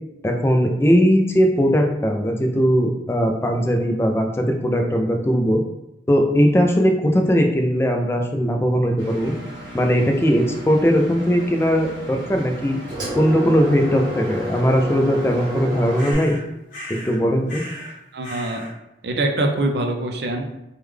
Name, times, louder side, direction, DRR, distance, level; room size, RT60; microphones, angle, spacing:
voice 1, 0.2-5.6 6.1-9.3 9.7-12.8 13.2-16.4 16.9-17.6, equal, 15° left, 2 dB, 0.3 m, -19 dB
Engine, 9.0-16.1, left 1 dB, 25° right, 0.9 m, -32 dB
sound 1, 15.9-16.4 16.7-17.2 17.5-18.0 18.2-18.7, equal, 50° left, 1.0 m, -36 dB
voice 2, 18.1-18.7 19.0-20.6, right 2 dB, 70° right, 3 dB, 0.5 m, -24 dB
3.5 x 2.2 x 3.2 m, 0.91 s
head